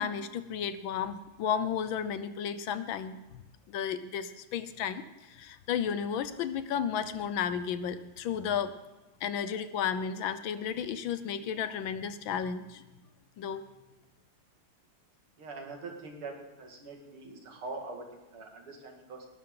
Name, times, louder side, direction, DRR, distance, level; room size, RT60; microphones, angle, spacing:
voice 1, 0.0-3.4 3.7-8.8 9.2-12.8 13.4-13.6, left 8 dB, 70° left, 12 dB, 1.5 m, -33 dB
voice 2, 15.4-19.3, right 3 dB, 80° right, 2 dB, 3.1 m, -43 dB
19.0 x 11.5 x 3.8 m, 1.1 s
omnidirectional pair, 2.4 m